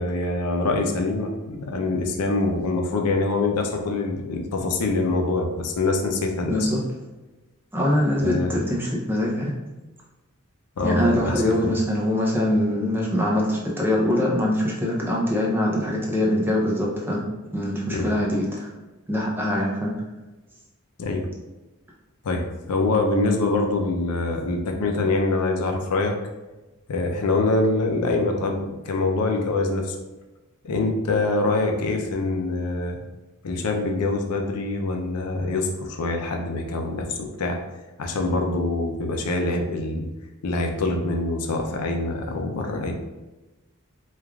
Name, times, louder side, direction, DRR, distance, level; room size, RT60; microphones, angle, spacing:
voice 1, 0.0-6.7 8.2-8.5 10.8-11.8 17.9-18.1 21.0-21.3 22.2-26.2 26.9-30.0 30.6-33.0 33.4-37.6 38.0-40.1 40.4-42.9, left 2 dB, 85° left, 3 dB, 0.5 m, -24 dB
voice 2, 6.5-6.8 7.7-9.5 10.8-17.2 17.5-18.7 19.1-19.9, left 1 dB, 10° right, -3 dB, 0.5 m, -23 dB
3.2 x 2.3 x 2.3 m, 1.1 s
head